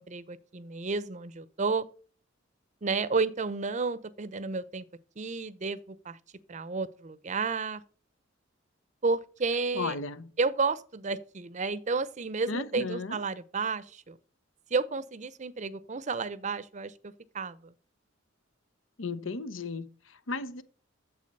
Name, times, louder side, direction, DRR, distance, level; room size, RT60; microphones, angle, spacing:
voice 1, 0.0-1.9 2.8-4.8 5.2-6.2 6.5-7.8 9.0-10.0 10.4-14.2 14.7-17.7, right 4 dB, 35° right, 0.6 m, -31 dB
voice 2, 9.7-10.3 12.4-13.2 19.0-20.6, left 3 dB, 80° left, 0.9 m, -35 dB
8.4 x 7.4 x 6.6 m
head